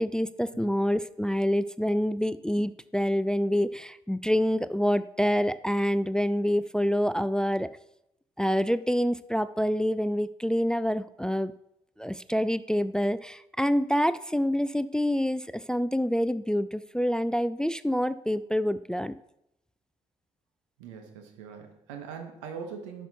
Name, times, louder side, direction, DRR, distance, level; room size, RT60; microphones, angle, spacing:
voice 1, 0.0-7.7 8.4-11.5 12.0-19.1, equal, 5° left, 15 dB, 0.3 m, -27 dB
voice 2, 20.8-23.1, right 6 dB, 85° right, 4 dB, 1.1 m, -41 dB
11.5 x 5.8 x 2.8 m, 0.82 s
hypercardioid pair, 45°, 16 cm